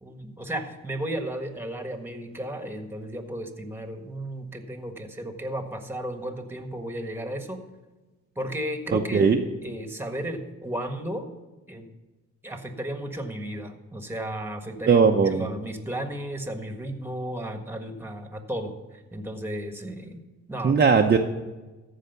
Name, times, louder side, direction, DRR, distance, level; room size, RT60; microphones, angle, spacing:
voice 1, 0.0-7.6 8.4-9.3 9.6-11.3 11.7-11.9 12.4-20.2 20.5-20.8, right 1 dB, 10° right, 6 dB, 1.5 m, -34 dB
voice 2, 8.9-9.4 14.9-15.5 20.6-21.2, right 5 dB, 35° right, 2 dB, 0.8 m, -19 dB
14.0 x 5.0 x 6.9 m, 1.2 s
cardioid pair, 85°, 29 cm